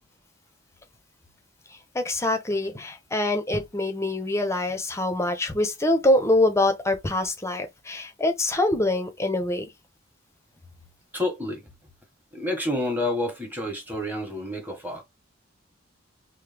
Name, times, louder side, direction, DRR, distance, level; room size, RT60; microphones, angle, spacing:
voice 1, 1.7-9.7, left 1 dB, 15° left, 0.6 m, -24 dB
voice 2, 11.1-11.6 12.3-15.0, left 1 dB, 10° right, 1.1 m, -29 dB
3.1 x 2.0 x 3.3 m
head